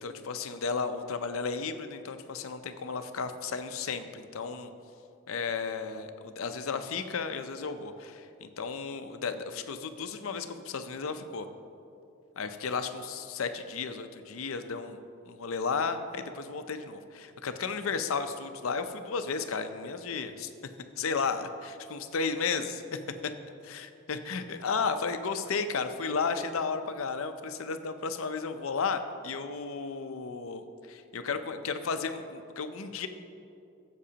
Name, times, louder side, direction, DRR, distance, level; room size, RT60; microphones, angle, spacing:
voice 1, 0.0-4.7 5.3-11.5 12.4-15.0 15.3-20.5 21.0-23.0 23.6-23.8 24.1-30.6 30.9-33.1, left 5 dB, 70° left, 9 dB, 0.6 m, -33 dB
15.0 x 7.5 x 2.8 m, 2.6 s
head